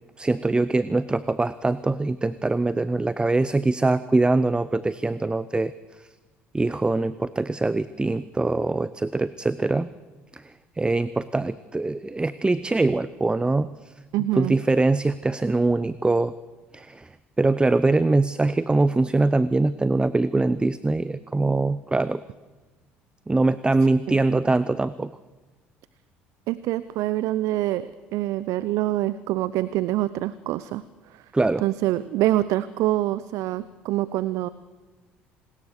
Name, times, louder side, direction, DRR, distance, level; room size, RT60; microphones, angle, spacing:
voice 1, 0.2-5.7 6.5-9.9 10.3-10.4 10.8-13.9 14.4-16.3 16.7-17.1 17.4-22.2 23.3-25.1 31.3-31.6, right 2 dB, 15° right, 16 dB, 0.7 m, -23 dB
voice 2, 14.1-14.5 24.1-24.2 26.5-30.8 31.1-31.2 31.6-34.5, right 15 dB, 65° right, 17 dB, 0.7 m, -25 dB
27.5 x 20.0 x 6.5 m, 1.2 s
hypercardioid pair, 60°, 6 cm